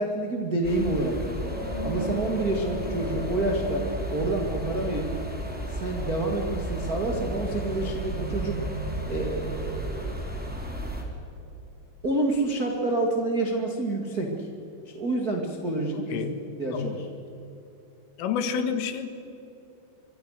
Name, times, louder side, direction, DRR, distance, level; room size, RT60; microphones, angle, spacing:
voice 1, 0.0-1.5 1.8-5.1 5.7-8.6 9.1-10.2 12.0-14.5 14.8-16.2 16.6-17.1, right 2 dB, 90° right, 1 dB, 0.8 m, -28 dB
sound 1, 0.6-11.0, right 1 dB, ahead, 2.6 m, -34 dB
sound 2, 1.4-11.5, right 1 dB, 20° right, 6.5 m, -38 dB
voice 2, 18.2-19.1, left 7 dB, 80° left, 9 dB, 4.2 m, -28 dB
26.5 x 24.0 x 6.6 m, 2.8 s
omnidirectional pair, 5.9 m